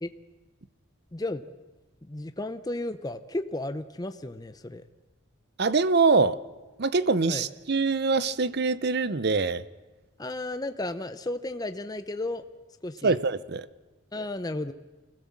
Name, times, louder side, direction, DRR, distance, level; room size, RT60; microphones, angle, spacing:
voice 1, 1.1-1.4 2.0-4.8 7.3-7.5 10.2-12.4 12.8-13.2 14.1-14.7, left 2 dB, 20° left, 10 dB, 0.7 m, -33 dB
voice 2, 5.6-6.4 6.8-9.6 13.0-13.7, right 4 dB, 50° right, 16 dB, 0.7 m, -24 dB
25.0 x 16.5 x 7.4 m, 1.2 s
head